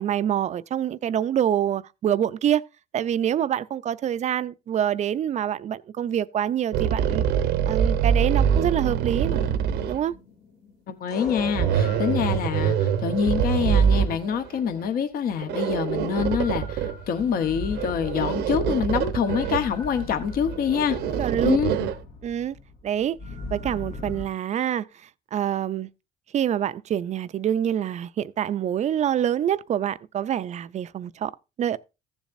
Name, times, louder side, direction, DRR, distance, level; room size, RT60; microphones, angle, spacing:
voice 1, 0.0-2.6 2.9-7.2 7.7-9.4 9.9-10.1 21.2-21.6 22.2-22.6 22.8-23.2 23.5-24.9 25.3-25.9 26.3-31.3 31.6-31.8, right 10 dB, 45° right, 0.4 m, -26 dB
sound 1, 6.7-10.0 11.3-14.7 15.4-17.0 17.7-19.6 19.9-20.0 20.3-22.0, right 8 dB, 80° right, 0.9 m, -24 dB
sound 2, 9.2-13.6 16.1-24.3, left 3 dB, 80° left, 2.6 m, -39 dB
voice 2, 10.9-21.0 21.4-21.7, left 7 dB, 60° left, 1.0 m, -26 dB
15.0 x 7.2 x 2.6 m
cardioid pair, 110°, 17 cm